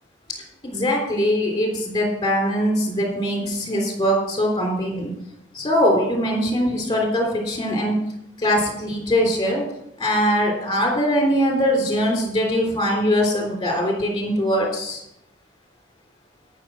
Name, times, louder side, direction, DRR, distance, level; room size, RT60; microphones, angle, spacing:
voice 1, 0.6-5.1 5.5-8.0 8.4-9.6 10.0-15.0, equal, 20° left, 0 dB, 3.5 m, -22 dB
13.0 x 6.6 x 6.1 m, 0.81 s
head